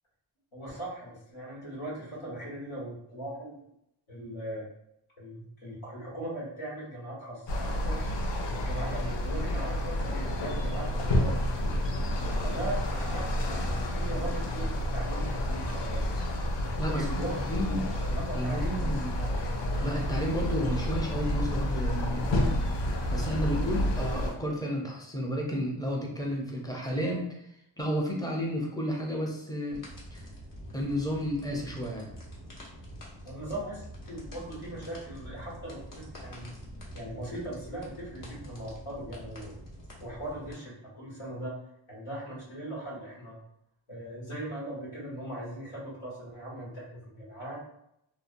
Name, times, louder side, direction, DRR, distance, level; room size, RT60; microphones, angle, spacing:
voice 1, 0.5-3.6 4.1-4.6 5.2-8.2 8.5-11.6 12.4-16.2 16.9-17.4 17.7-19.3 33.2-36.5 36.9-39.6 40.0-41.6 41.9-43.4 43.9-47.6, right 1 dB, 80° left, -6 dB, 1.2 m, -39 dB
sound 1, 7.5-24.3, left 1 dB, 60° left, 0.6 m, -30 dB
voice 2, 16.8-17.8 18.3-19.2 19.8-22.5 23.1-27.3 27.8-29.8 30.1-30.2 30.7-32.1, equal, 10° left, -1 dB, 0.5 m, -32 dB
sound 2, 29.7-40.5, equal, 40° left, 0.9 m, -46 dB
2.7 x 2.0 x 2.5 m, 0.79 s
wide cardioid pair, 80°, 49 cm